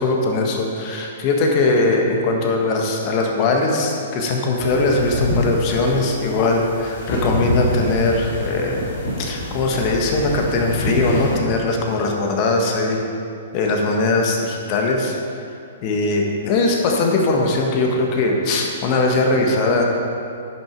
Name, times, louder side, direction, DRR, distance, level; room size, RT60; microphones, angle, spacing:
voice 1, 0.0-8.8 9.2-13.0 13.5-15.2 15.8-19.9, left 2 dB, 40° left, 1 dB, 1.5 m, -20 dB
sound 1, 4.6-11.4, left 1 dB, 70° left, 2.4 m, -26 dB
10.5 x 6.5 x 4.6 m, 2.5 s
hypercardioid pair, 125°, 0 cm